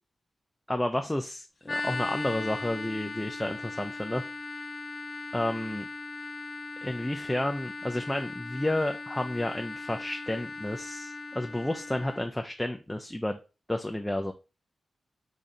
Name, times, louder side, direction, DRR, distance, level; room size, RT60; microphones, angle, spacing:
voice 1, 0.7-4.2 5.3-5.8 6.8-13.4 13.7-14.3, left 1 dB, 10° left, 4 dB, 0.4 m, -31 dB
sound 1, 1.7-12.3, left 3 dB, 50° left, 0.8 m, -38 dB
3.8 x 3.1 x 2.7 m, 0.31 s
cardioid pair, 55°, 0 cm